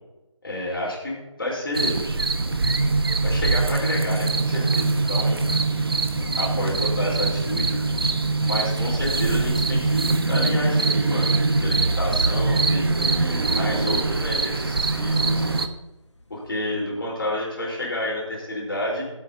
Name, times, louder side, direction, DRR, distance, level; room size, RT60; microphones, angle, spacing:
voice 1, 0.4-2.0 3.2-5.4 6.4-7.8 8.4-15.5 16.3-19.0, left 1 dB, 45° left, -4 dB, 3.9 m, -30 dB
sound 1, 1.7-15.7, right 3 dB, 50° right, 0.9 m, -23 dB
Thunder / Rain, 2.4-11.4 12.1-12.2 13.1-14.4 15.9-16.7, left 2 dB, 65° left, 1.4 m, -41 dB
18.0 x 8.2 x 2.7 m, 1.1 s
figure-of-eight pair, 160°, 16 cm